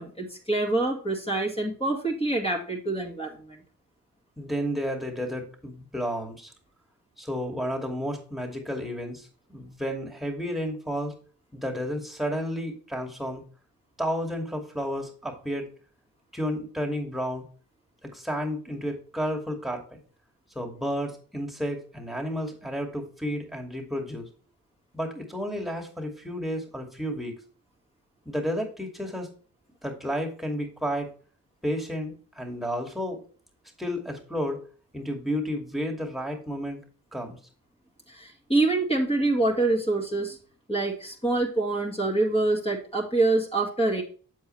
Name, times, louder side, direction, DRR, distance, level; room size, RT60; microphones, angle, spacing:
voice 1, 0.0-3.6 38.1-40.4 40.7-44.0, right 2 dB, 15° left, -1 dB, 2.3 m, -26 dB
voice 2, 4.4-6.5 7.2-11.1 11.5-13.4 14.0-15.7 16.3-17.5 18.0-20.0 20.5-24.3 24.9-27.3 28.3-29.3 29.8-31.1 31.6-33.2 33.8-34.6 34.9-36.8 37.1-37.4, equal, ahead, 3 dB, 2.5 m, -31 dB
8.1 x 7.3 x 3.3 m, 0.40 s
supercardioid pair, 55°, 36 cm